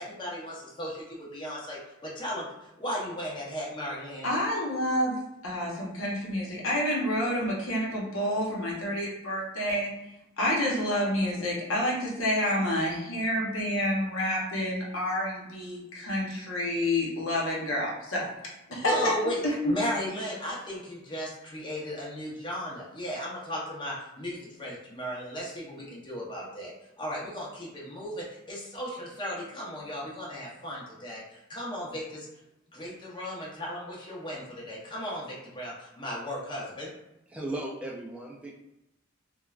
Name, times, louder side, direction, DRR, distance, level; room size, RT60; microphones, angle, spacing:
voice 1, 0.0-2.5 2.8-4.3 18.7-32.3 32.7-36.9, equal, 25° left, -5 dB, 0.7 m, -36 dB
voice 2, 4.2-5.1 5.4-9.9 10.4-18.2 18.7-19.1 19.6-19.7, left 1 dB, 80° left, -3 dB, 0.8 m, -28 dB
voice 3, 37.3-38.5, right 1 dB, 5° right, -3 dB, 0.3 m, -36 dB
3.1 x 2.2 x 2.3 m, 0.92 s
head